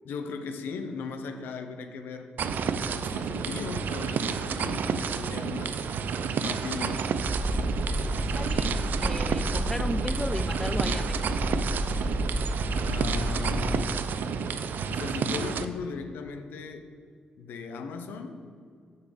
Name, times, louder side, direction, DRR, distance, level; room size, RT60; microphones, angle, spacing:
voice 1, 0.0-5.9 6.4-7.1 12.8-13.9 14.9-16.9 17.4-18.4, left 5 dB, 80° left, 7 dB, 0.8 m, -37 dB
sound 1, 2.4-15.6, right 6 dB, 70° right, 0.5 m, -30 dB
sound 2, 7.1-13.8, right 1 dB, 40° right, 2.0 m, -30 dB
voice 2, 7.9-8.7 9.0-11.5, left 1 dB, 10° left, 11 dB, 0.5 m, -35 dB
6.8 x 5.5 x 6.7 m, 2.2 s
supercardioid pair, 55°, 3 cm